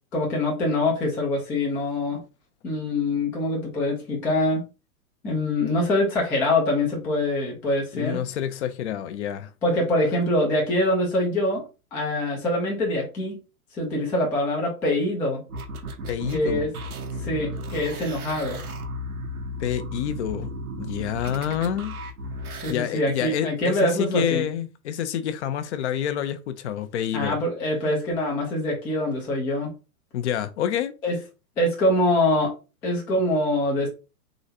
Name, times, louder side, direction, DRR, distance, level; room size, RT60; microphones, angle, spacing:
voice 1, 0.1-2.2 2.6-4.6 5.2-8.2 9.6-11.6 11.9-13.4 13.7-15.4 16.3-16.7 17.2-18.6 22.6-24.4 27.1-29.7 31.0-31.2 31.6-32.5 32.8-33.9, left 1 dB, 5° left, 0.3 m, -24 dB
voice 2, 7.9-9.5 16.1-16.7 19.6-20.5 20.8-22.0 22.7-27.4 30.1-30.9, left 10 dB, 50° left, 0.6 m, -28 dB
sound 1, 15.5-22.7, equal, 80° right, 1.0 m, -34 dB
3.9 x 3.2 x 2.7 m
hypercardioid pair, 110°, 44 cm